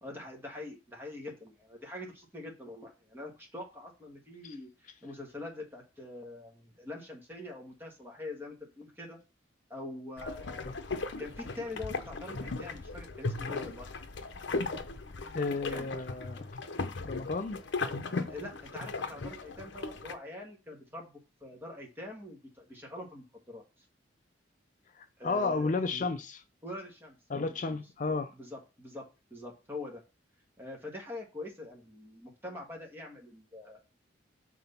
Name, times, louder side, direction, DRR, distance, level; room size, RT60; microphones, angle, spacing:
voice 1, 0.0-9.2 9.7-10.8 11.2-13.9 15.7-15.9 18.3-21.1 21.4-23.6 25.2-25.7 26.6-27.8 28.3-30.0 30.6-33.8, left 2 dB, 10° right, 1.7 m, -44 dB
sound 1, 10.2-20.2, left 3 dB, 70° left, 0.7 m, -37 dB
voice 2, 15.3-16.5 17.0-17.6 25.0-26.4 27.3-28.3, left 3 dB, 40° left, 0.4 m, -32 dB
6.2 x 3.8 x 5.6 m
head